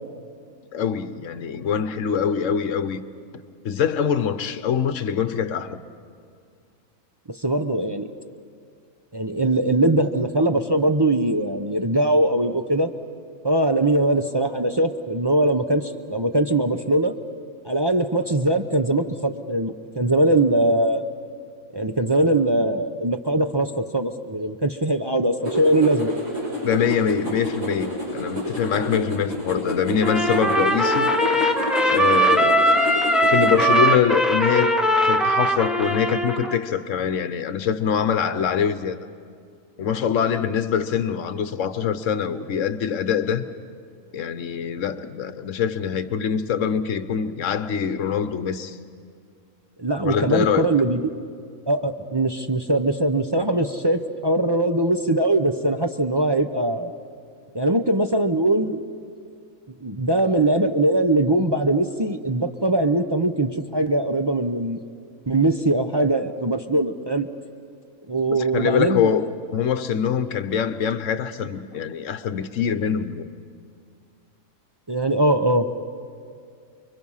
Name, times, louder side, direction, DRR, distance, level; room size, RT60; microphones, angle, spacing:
voice 1, 0.7-3.0 3.6-5.8 26.6-31.1 31.9-32.6 33.3-34.7 35.0-39.0 39.8-43.4 44.1-48.8 50.0-50.7 68.4-73.3, left 7 dB, 65° left, 1.2 m, -24 dB
voice 2, 7.4-8.1 9.1-12.9 13.4-17.1 17.6-21.0 21.7-26.1 49.8-51.1 51.7-56.9 57.5-58.8 59.8-64.8 65.3-67.3 68.1-69.1 74.9-75.7, right 1 dB, 25° right, 0.6 m, -21 dB
sound 1, 25.4-33.7, equal, 75° right, 6.4 m, -29 dB
Trumpet, 30.0-36.6, right 1 dB, ahead, 1.2 m, -20 dB
29.5 x 22.5 x 5.6 m
omnidirectional pair, 1.5 m